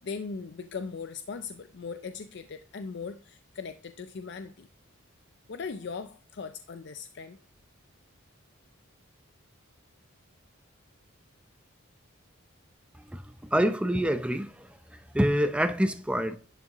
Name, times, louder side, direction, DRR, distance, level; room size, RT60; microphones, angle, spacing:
voice 1, 0.0-4.7 5.5-7.4, left 5 dB, 55° left, 0.4 m, -39 dB
voice 2, 13.1-14.7 15.1-16.4, equal, 5° right, 0.5 m, -26 dB
11.0 x 6.2 x 3.0 m
head